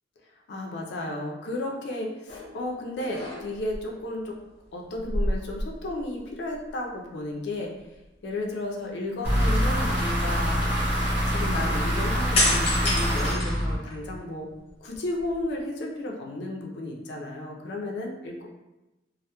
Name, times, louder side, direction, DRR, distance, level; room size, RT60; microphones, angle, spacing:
voice 1, 0.5-4.4 4.7-7.7 8.2-10.8 11.1-14.5 14.8-18.5, left 1 dB, 70° left, 0 dB, 0.4 m, -33 dB
sound 1, 2.3-2.6 3.0-3.8 5.0-6.2 6.5-6.7 12.3-14.2 14.7-15.6, left 1 dB, 35° left, 0.7 m, -28 dB
sound 2, 9.2-14.2, equal, 10° right, 0.8 m, -25 dB
2.1 x 2.0 x 2.8 m, 0.99 s
head